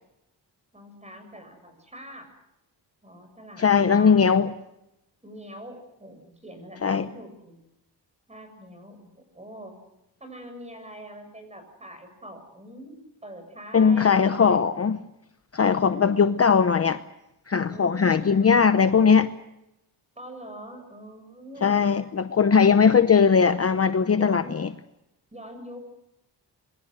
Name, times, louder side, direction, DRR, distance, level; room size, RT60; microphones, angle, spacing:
voice 1, 0.7-2.3 3.0-3.6 3.9-4.1 5.2-7.6 8.3-9.8 10.2-14.6 15.7-16.2 17.7-18.7 20.2-22.0 22.5-22.8 24.1-24.6 25.3-25.9, equal, 15° right, 7.1 m, -43 dB
voice 2, 3.6-4.5 6.8-7.1 13.7-15.0 15.5-17.0 17.5-19.3 21.6-24.7, left 6 dB, 35° left, 0.8 m, -19 dB
27.5 x 22.5 x 6.6 m
wide cardioid pair, 110°, 42 cm